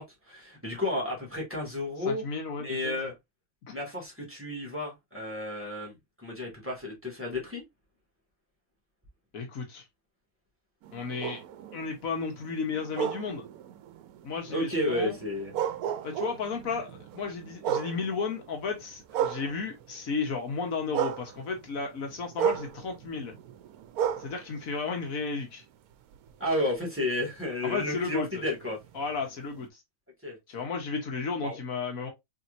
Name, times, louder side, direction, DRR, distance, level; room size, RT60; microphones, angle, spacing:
voice 1, 0.0-2.2 2.6-3.1 3.7-7.6 14.5-15.5 26.4-28.8 30.2-30.4 31.4-31.6, left 1 dB, 10° right, 1.9 m, -32 dB
voice 2, 2.0-2.9 3.7-3.8 9.3-9.8 10.9-11.4 11.7-13.5 14.2-15.2 16.0-23.3 24.2-25.6 27.6-28.4 28.9-29.8 30.5-32.1, left 4 dB, 70° left, 1.5 m, -33 dB
sound 1, 10.8-20.1 20.4-25.6 26.1-29.7, right 9 dB, 90° right, 1.1 m, -35 dB
4.2 x 3.4 x 2.6 m
omnidirectional pair, 1.5 m